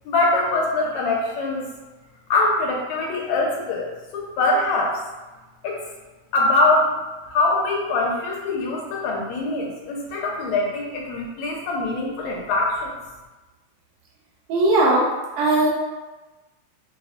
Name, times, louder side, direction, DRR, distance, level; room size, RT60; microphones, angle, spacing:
voice 1, 0.1-1.7 2.3-5.0 5.6-5.8 6.3-7.0 7.2-12.9, left 2 dB, 80° left, -2 dB, 1.8 m, -23 dB
voice 2, 14.5-15.1 15.4-15.7, right 2 dB, 90° right, -4 dB, 2.3 m, -18 dB
5.2 x 2.1 x 2.5 m, 1.1 s
omnidirectional pair, 3.3 m